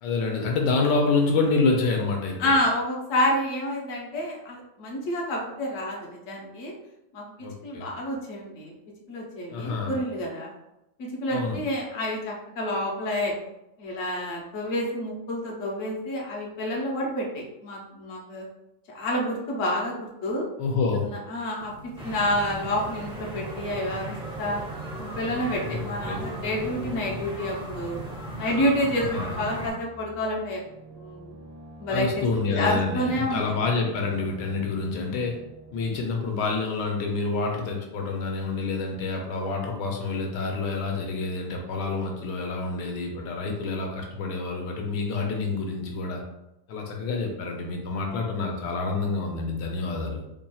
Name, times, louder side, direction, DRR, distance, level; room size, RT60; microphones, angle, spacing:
voice 1, 0.0-2.5 7.4-7.9 9.5-9.9 11.3-11.6 20.6-21.1 25.7-26.2 29.0-29.3 31.9-35.4 35.7-46.2 46.7-50.2, left 3 dB, 85° left, 1 dB, 1.3 m, -27 dB
voice 2, 2.4-6.7 7.1-7.2 7.6-8.7 9.1-10.5 11.0-13.3 13.8-18.4 18.9-20.5 21.0-24.6 25.0-28.0 28.4-30.6 30.9-31.3 31.8-32.1 32.5-33.4, left 1 dB, 55° left, -2 dB, 1.1 m, -28 dB
sound 1, 21.6-29.1, right 2 dB, 65° right, 1.2 m, -48 dB
sound 2, 22.0-29.7, right 1 dB, 10° right, 0.3 m, -36 dB
sound 3, 29.5-36.1, right 1 dB, 85° right, 1.3 m, -47 dB
4.1 x 3.3 x 2.3 m, 0.88 s
omnidirectional pair, 1.8 m